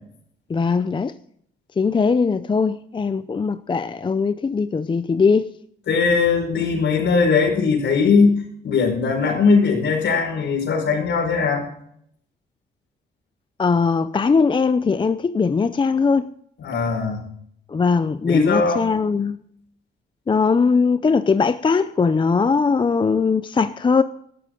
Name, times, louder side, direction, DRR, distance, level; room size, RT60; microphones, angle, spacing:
voice 1, 0.5-1.1 1.8-5.5 13.6-16.3 17.7-19.4 20.3-24.0, left 5 dB, 25° left, 0.5 m, -20 dB
voice 2, 5.9-8.4 8.6-11.6 16.6-17.2 18.2-18.9, left 4 dB, 65° left, 4.9 m, -19 dB
13.5 x 12.5 x 3.8 m
cardioid pair, 90°, 20 cm